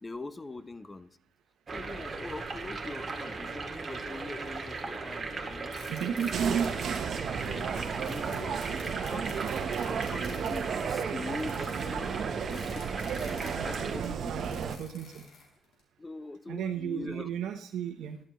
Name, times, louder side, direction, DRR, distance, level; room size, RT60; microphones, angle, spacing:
voice 1, 0.0-1.1 1.7-5.7 6.0-6.6 7.4-8.8 9.1-12.1 12.5-12.9 13.2-14.6 16.0-17.3, left 3 dB, 20° left, 14 dB, 0.6 m, -43 dB
sound 1, 1.7-14.0, right 4 dB, 30° right, 1.9 m, -38 dB
sound 2, 5.7-7.0 7.4-15.8, left 4 dB, 80° left, 4.5 m, -51 dB
voice 2, 5.9-6.7 13.8-15.2 16.5-18.2, right 8 dB, 90° right, 5 dB, 0.8 m, -33 dB
sound 3, 6.3-14.8, right 7 dB, 60° right, 1.0 m, -34 dB
13.5 x 12.0 x 3.1 m, 0.66 s
cardioid pair, 115°, 0 cm